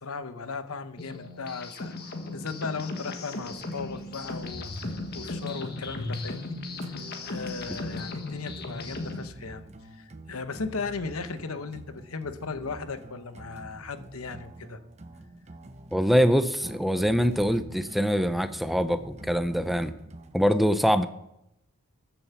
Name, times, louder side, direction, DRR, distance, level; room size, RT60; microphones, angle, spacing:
voice 1, 0.0-1.9 2.3-4.7 5.1-6.6 6.9-9.6 9.9-14.8, left 4 dB, 90° left, 10 dB, 0.9 m, -36 dB
sound 1, 1.0-9.3, left 2 dB, 50° left, 1.5 m, -36 dB
sound 2, 3.3-20.5, right 2 dB, 30° right, 0.9 m, -47 dB
voice 2, 15.9-19.9 20.3-21.1, equal, ahead, 10 dB, 0.6 m, -24 dB
13.0 x 7.1 x 7.0 m, 0.82 s
head